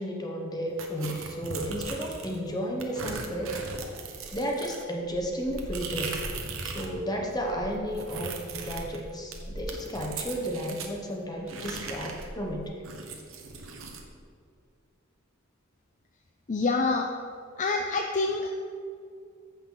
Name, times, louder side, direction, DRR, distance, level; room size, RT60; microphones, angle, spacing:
voice 1, 0.0-3.6 4.3-6.2 6.6-12.7, equal, 20° left, 0 dB, 1.1 m, -33 dB
sound 1, 0.8-2.4 2.8-6.9 7.2-10.9 11.5-14.0, right 4 dB, 80° right, 1.1 m, -38 dB
voice 2, 16.5-17.1 17.6-18.5, left 3 dB, 35° left, 3 dB, 0.5 m, -26 dB
14.0 x 5.6 x 4.0 m, 2.4 s
head